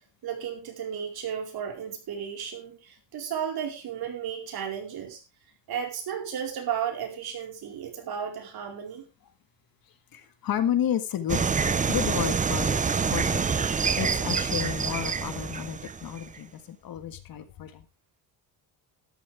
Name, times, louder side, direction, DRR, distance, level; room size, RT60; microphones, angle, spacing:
voice 1, 0.2-5.2 5.7-9.1, right 8 dB, 60° right, 2 dB, 4.7 m, -34 dB
voice 2, 10.1-11.5 11.8-12.8 13.1-13.4 14.0-17.8, left 10 dB, 55° left, 10 dB, 1.7 m, -31 dB
sound 1, 11.3-16.4, right 5 dB, 20° right, 0.6 m, -26 dB
13.0 x 11.5 x 3.5 m, 0.30 s
cardioid pair, 130°, 42 cm